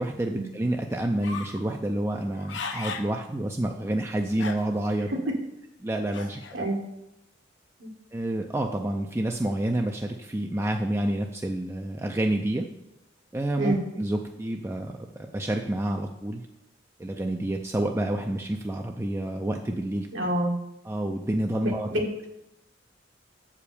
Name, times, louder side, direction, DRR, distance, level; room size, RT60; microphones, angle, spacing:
voice 1, 0.0-5.1 5.8-6.7 8.1-12.7 13.3-16.4 17.0-20.1 20.8-21.9, right 1 dB, 15° right, 3 dB, 0.4 m, -28 dB
sound 1, 1.2-1.6 2.2-3.1 3.6-3.7 4.3-4.9 6.1-6.6, left 5 dB, 75° left, 0.8 m, -36 dB
voice 2, 20.1-20.6 21.6-22.3, right 1 dB, 80° right, 1 dB, 1.7 m, -27 dB
7.8 x 4.9 x 7.0 m, 0.89 s
head